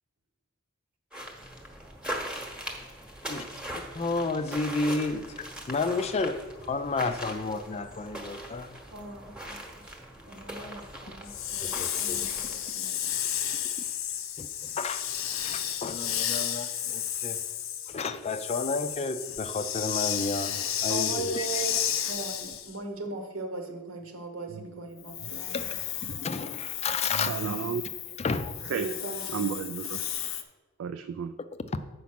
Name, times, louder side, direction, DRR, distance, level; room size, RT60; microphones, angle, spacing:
sound 1, 1.1-12.7, right 1 dB, 5° right, 1.0 m, -40 dB
voice 1, 3.9-5.3 5.7-8.8 11.6-12.3 14.4-14.5 14.8-15.0 15.4-17.4 17.9-21.5 25.5-25.7 26.1-27.5 28.2-28.5 31.7-31.8, left 3 dB, 30° left, 11 dB, 0.4 m, -31 dB
voice 2, 8.9-10.0 10.3-13.1 20.9-25.7 28.7-29.7, right 3 dB, 90° right, 4 dB, 1.2 m, -39 dB
Hiss, 11.3-22.7 25.0-30.4, left 10 dB, 75° left, 0.6 m, -33 dB
voice 3, 27.1-27.8 28.7-28.9 29.3-30.0 30.8-31.3, right 7 dB, 75° right, 8 dB, 0.3 m, -32 dB
7.0 x 5.2 x 5.9 m, 1.2 s
head